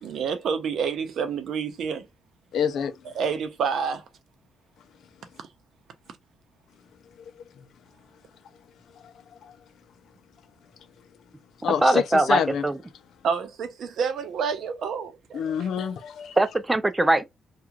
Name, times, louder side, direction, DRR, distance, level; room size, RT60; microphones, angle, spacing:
voice 1, 0.0-2.1 3.1-4.0 13.2-15.7, right 6 dB, 70° right, 0.7 m, -28 dB
voice 2, 2.5-2.9 7.6-7.7 8.9-9.6 11.6-12.7 15.3-16.4, left 8 dB, 70° left, 0.5 m, -27 dB
voice 3, 11.8-12.8 16.4-17.2, right 2 dB, 15° right, 0.4 m, -21 dB
2.9 x 2.4 x 2.4 m
cardioid pair, 90°, 0 cm